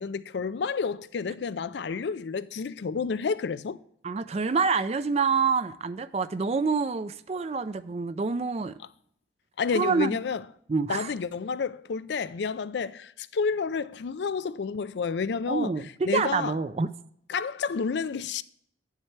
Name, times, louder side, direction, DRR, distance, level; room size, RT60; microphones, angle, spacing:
voice 1, 0.0-3.8 9.6-10.4 10.9-15.7 16.1-16.5 17.3-18.4, left 5 dB, 70° left, 0.4 m, -30 dB
voice 2, 4.0-8.8 9.7-10.2 10.7-11.1 15.5-16.9, right 5 dB, 35° right, 0.4 m, -27 dB
9.7 x 7.4 x 3.2 m
head